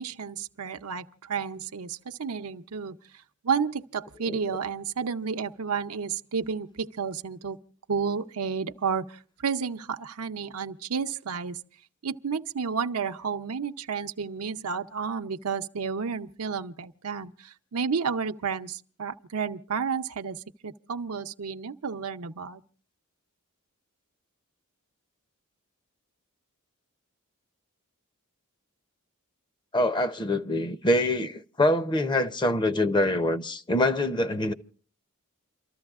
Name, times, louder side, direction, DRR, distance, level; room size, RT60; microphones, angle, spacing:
voice 1, 0.0-3.0 3.4-7.6 7.9-11.6 12.0-22.6, right 6 dB, 80° right, 0.7 m, -31 dB
voice 2, 29.7-34.5, left 1 dB, 20° left, 0.6 m, -25 dB
29.5 x 13.5 x 2.4 m
head